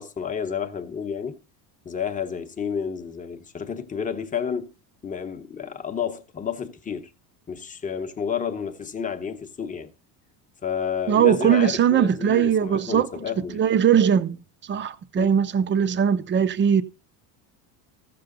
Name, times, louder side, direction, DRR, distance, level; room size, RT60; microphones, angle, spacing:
voice 1, 0.0-1.4 1.8-4.7 5.0-7.1 7.5-9.9 10.6-13.6 15.2-15.3, left 7 dB, 20° left, 0.9 m, -30 dB
voice 2, 11.1-13.1 13.5-14.4 14.7-16.8, right 8 dB, 25° right, 0.6 m, -20 dB
15.0 x 6.9 x 3.8 m
cardioid pair, 130°, 43 cm